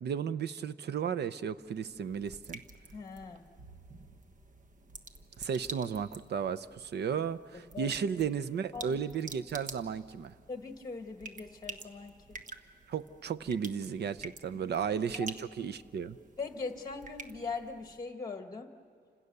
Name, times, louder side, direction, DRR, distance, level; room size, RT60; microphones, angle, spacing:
voice 1, 0.0-2.6 5.4-10.3 12.9-16.2, right 7 dB, 80° right, 13 dB, 0.7 m, -34 dB
sound 1, 1.5-18.0, right 3 dB, 50° right, 1.2 m, -49 dB
voice 2, 2.9-3.5 7.5-7.9 8.7-9.0 10.5-12.4 15.1-15.3 16.4-18.7, left 4 dB, 20° left, 6 dB, 1.5 m, -41 dB
29.0 x 26.5 x 6.8 m, 2.3 s
wide cardioid pair, 160°, 17 cm